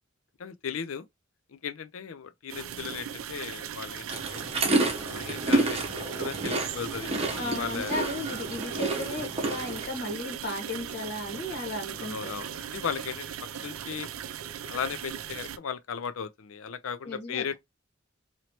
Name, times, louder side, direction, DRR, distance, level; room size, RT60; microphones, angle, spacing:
voice 1, 0.4-1.1 1.5-4.5 5.0-5.8 6.2-8.0 12.0-13.3 13.6-14.1 14.6-17.5, left 7 dB, 80° left, 0.5 m, -36 dB
sound 1, 2.5-15.6, right 9 dB, 85° right, 0.4 m, -39 dB
sound 2, 4.1-9.9, right 2 dB, 30° right, 0.9 m, -29 dB
voice 2, 7.4-12.4 17.0-17.5, left 2 dB, 55° left, 1.7 m, -35 dB
3.1 x 2.8 x 2.9 m
head